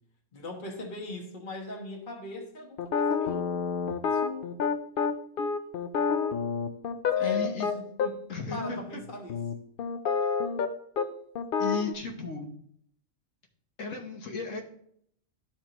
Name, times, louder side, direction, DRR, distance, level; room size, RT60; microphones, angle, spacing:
voice 1, 0.3-3.5 4.1-4.2 7.1-8.1 8.5-9.4, left 1 dB, 40° left, 0 dB, 1.3 m, -40 dB
sound 1, 2.8-8.1 8.6-8.8 9.3-10.7 11.0-11.1 11.4-11.9, left 6 dB, 60° left, 0.6 m, -28 dB
voice 2, 7.2-7.7 8.3-9.0 11.6-12.5 13.8-14.6, left 4 dB, 75° left, 0 dB, 1.3 m, -35 dB
13.0 x 4.3 x 2.9 m, 0.69 s
omnidirectional pair, 1.3 m